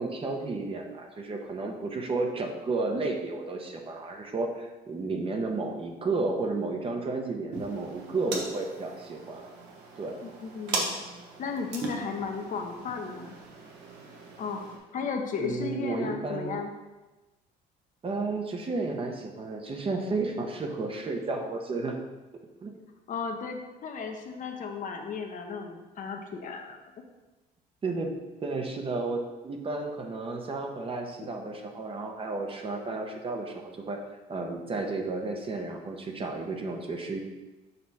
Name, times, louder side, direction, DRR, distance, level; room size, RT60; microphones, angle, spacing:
voice 1, 0.0-9.5 10.0-10.2 15.4-16.6 18.0-22.0 22.6-22.7 27.8-28.1 28.4-34.0 34.3-37.2, right 3 dB, 35° right, 3 dB, 0.9 m, -32 dB
sound 1, 7.5-14.8, right 3 dB, 85° right, 1.2 m, -39 dB
voice 2, 10.2-11.0 11.4-13.4 14.4-14.6 14.9-16.7 23.1-26.8, left 5 dB, 50° left, 3 dB, 0.9 m, -35 dB
6.7 x 3.1 x 5.4 m, 1.1 s
cardioid pair, 110°, 17 cm